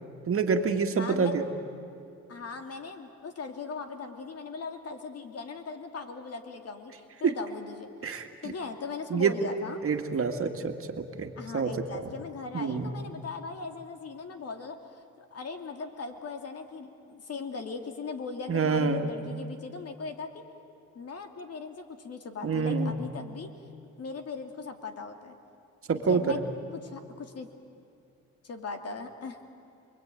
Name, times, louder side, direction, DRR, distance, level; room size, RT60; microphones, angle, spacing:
voice 1, 0.3-1.5 7.2-7.3 8.0-8.5 9.1-9.4 9.8-12.1 12.5-12.9 18.5-19.1 22.4-22.9 25.9-26.4, right 5 dB, 45° right, 5 dB, 2.1 m, -27 dB
voice 2, 1.0-1.4 2.3-7.9 8.4-9.8 11.4-20.4 20.9-23.5 24.0-25.4 26.1-26.4 26.7-27.5 28.4-29.4, left 4 dB, 55° left, 6 dB, 2.8 m, -39 dB
28.5 x 22.0 x 9.2 m, 2.5 s
cardioid pair, 90°, 30 cm